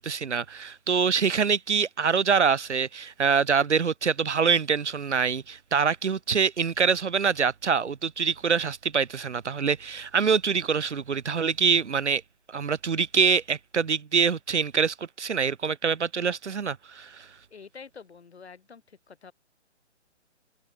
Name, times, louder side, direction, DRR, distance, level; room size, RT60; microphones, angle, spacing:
voice 1, 0.0-12.2 12.5-17.3, right 6 dB, 70° right, 1.0 m, -25 dB
voice 2, 17.5-19.3, left 5 dB, 60° left, 6.1 m, -47 dB
figure-of-eight pair, 135°, 36 cm